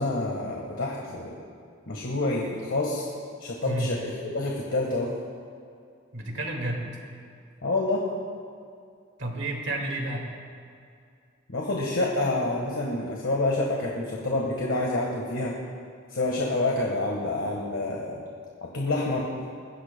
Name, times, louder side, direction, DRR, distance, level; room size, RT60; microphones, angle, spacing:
voice 1, 0.0-1.3 1.9-3.1 3.4-5.1 7.6-8.0 11.5-15.6 16.1-18.2 18.6-19.3, left 2 dB, 70° left, -1 dB, 1.5 m, -28 dB
voice 2, 3.6-4.0 6.1-6.9 9.2-10.3, right 1 dB, 60° right, 1 dB, 2.1 m, -31 dB
21.0 x 15.5 x 2.2 m, 2.3 s
head